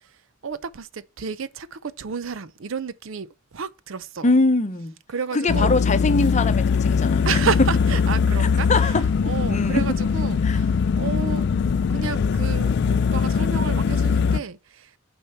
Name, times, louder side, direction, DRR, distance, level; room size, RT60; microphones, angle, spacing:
voice 1, 0.4-4.3 5.1-5.8 7.3-8.9 9.2-11.5 11.9-14.9, right 6 dB, 65° right, 0.5 m, -31 dB
voice 2, 4.2-4.9 5.3-7.3 8.4-9.1 9.5-9.8 10.4-10.6, left 3 dB, 35° left, 0.7 m, -22 dB
sound 1, 5.5-14.4, left 6 dB, 55° left, 0.3 m, -21 dB
6.8 x 4.4 x 5.6 m
head